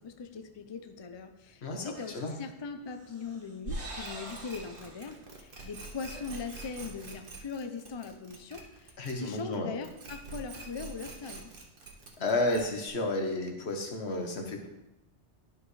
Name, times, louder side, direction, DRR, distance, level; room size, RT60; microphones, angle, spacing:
voice 1, 0.0-11.5, left 5 dB, 40° left, 7 dB, 0.4 m, -40 dB
voice 2, 1.6-2.4 9.0-9.7 12.2-14.7, left 2 dB, 70° left, 2 dB, 1.4 m, -32 dB
sound 1, 1.9-2.4 2.9-5.2 5.6-5.7 6.0-6.7, right 2 dB, 80° right, 1.7 m, -43 dB
sound 2, 4.0-9.5 9.8-12.9, right 3 dB, 55° right, 1.3 m, -46 dB
11.5 x 5.2 x 3.2 m, 0.95 s
omnidirectional pair, 1.1 m